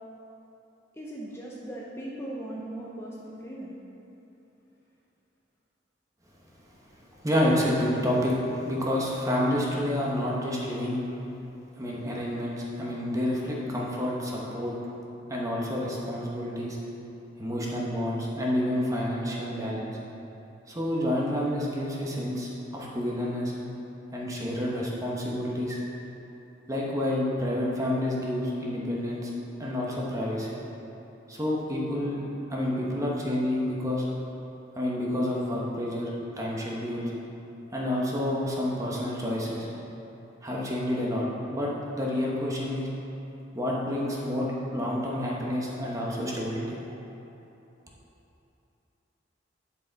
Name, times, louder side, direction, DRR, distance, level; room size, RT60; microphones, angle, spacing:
voice 1, 0.9-3.7, right 1 dB, 15° left, -5 dB, 0.6 m, -38 dB
voice 2, 7.2-8.3 8.6-11.0 11.8-14.7 15.3-16.8 17.4-19.9 20.7-23.5 24.1-25.8 26.7-29.3 29.6-30.6 31.3-32.2 32.5-34.0 34.8-37.1 37.7-39.7 40.4-42.9 43.5-46.8, left 1 dB, 20° right, -4 dB, 1.1 m, -29 dB
11.0 x 4.8 x 4.0 m, 2.9 s
head